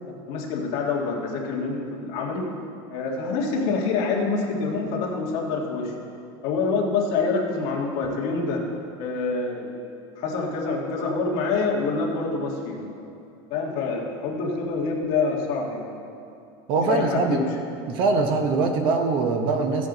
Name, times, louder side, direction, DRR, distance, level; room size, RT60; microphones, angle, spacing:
voice 1, 0.0-2.5 2.9-5.9 6.4-8.6 9.0-12.9 13.5-15.9 16.9-17.6, left 4 dB, 45° left, -2 dB, 1.8 m, -26 dB
voice 2, 16.7-17.4 17.9-19.9, right 4 dB, 40° right, 5 dB, 0.8 m, -22 dB
15.0 x 8.0 x 3.9 m, 2.6 s
supercardioid pair, 175°, 13 cm